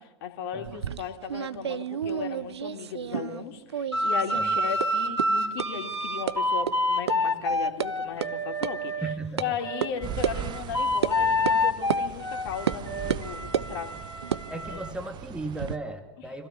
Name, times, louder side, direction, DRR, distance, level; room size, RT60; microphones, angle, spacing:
voice 1, 0.0-8.9 9.4-13.9 14.7-14.8, left 7 dB, 50° left, 5 dB, 3.0 m, -36 dB
sound 1, 0.6-3.4 3.7-4.4 4.8-4.9 5.2-5.3 5.6-5.7 6.3-6.4 6.7-6.8 7.1-7.2 7.5-7.9 8.2-8.3 8.6-8.7 9.4-9.5 9.8-9.9 10.2-10.4 11.0-11.2 11.4-11.6 11.9-12.0 12.7-12.8 13.1-13.7 14.2-15.7, right 8 dB, 70° right, 0.9 m, -30 dB
sound 2, 3.9-9.2 9.6-14.9, left 1 dB, 90° left, 2.8 m, -28 dB
voice 2, 9.0-9.4 14.5-16.5, right 2 dB, 5° right, 6 dB, 2.3 m, -36 dB
sound 3, 10.0-15.8, right 9 dB, 30° right, 1.2 m, -40 dB
26.0 x 17.0 x 9.9 m, 0.96 s
figure-of-eight pair, 90°, 15 cm